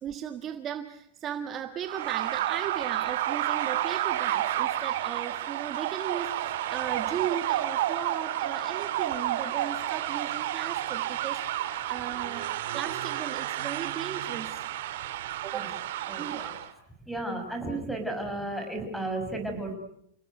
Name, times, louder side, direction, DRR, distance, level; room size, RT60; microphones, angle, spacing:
voice 1, 0.0-14.6 15.4-15.8 16.2-16.4, right 9 dB, 25° right, 8 dB, 1.5 m, -37 dB
sound 1, 1.8-16.7, right 12 dB, 65° right, 2.6 m, -31 dB
voice 2, 16.1-16.5 17.1-19.7, right 2 dB, ahead, 5 dB, 6.1 m, -33 dB
30.0 x 18.5 x 9.4 m, 0.74 s
supercardioid pair, 145°, 0 cm